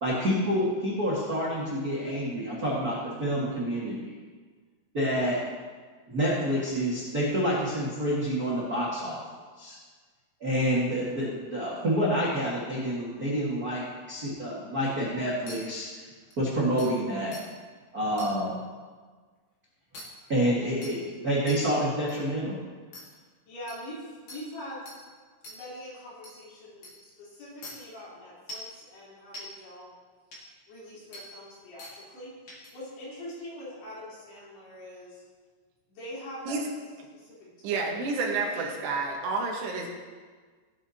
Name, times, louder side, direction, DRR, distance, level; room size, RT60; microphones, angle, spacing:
voice 1, 0.0-4.1 4.9-5.4 6.1-9.2 9.6-9.8 10.4-13.8 14.1-15.9 16.4-17.4 17.9-18.6 20.3-22.6, equal, 55° right, -7 dB, 1.0 m, -28 dB
sound 1, 15.5-15.6 16.3-16.4 16.8-16.9 17.3-17.4 18.2-18.3 19.9-20.0 20.8-20.9 21.5-21.6 22.1-22.2 22.9-23.0 23.7-23.8 24.3-24.4 24.9-25.0 25.4-25.6 26.2-26.3 26.8-26.9 27.6-27.7 28.5-28.7 29.3-29.4 30.3-30.4 31.1-31.2 31.8-31.9 32.5-32.7, left 1 dB, 45° left, 1.8 m, -42 dB
voice 2, 23.5-24.8 25.5-29.9 30.3-30.4 30.7-32.3 32.7-35.2 35.9-36.7 37.1-38.0 38.4-38.7, left 1 dB, 70° left, -8 dB, 5.8 m, -43 dB
voice 3, 37.6-39.9, right 4 dB, 80° right, 0 dB, 3.5 m, -29 dB
17.5 x 8.3 x 2.9 m, 1.5 s
omnidirectional pair, 4.8 m